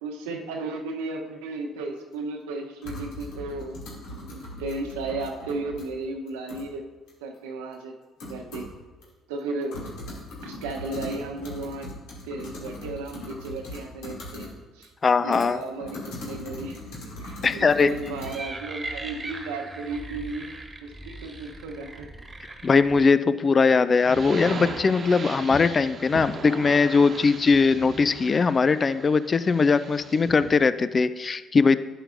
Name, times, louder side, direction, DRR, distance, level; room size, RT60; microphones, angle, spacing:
voice 1, 0.0-3.8 4.1-6.8 7.2-7.9 8.3-8.7 9.3-9.9 10.4-11.9 12.2-14.5 14.7-14.9 15.2-16.9 17.2-20.5 20.8-22.1, right 3 dB, 85° right, 3 dB, 1.0 m, -34 dB
sound 1, 2.0-2.1 2.8-5.8 6.3-6.7 7.1-7.2 7.7-7.8 8.2-8.8 9.0-9.1 9.4-14.5 14.8-18.3, left 1 dB, 75° left, 2.6 m, -39 dB
voice 2, 15.0-15.6 17.4-17.9 22.6-31.8, left 4 dB, 35° left, 14 dB, 0.4 m, -20 dB
sound 2, 17.9-23.1, right 2 dB, 25° right, 1.4 m, -39 dB
Viento helado, 23.9-30.6, right 4 dB, 50° right, 1.0 m, -37 dB
11.0 x 8.2 x 2.6 m, 1.3 s
hypercardioid pair, 60°, 0 cm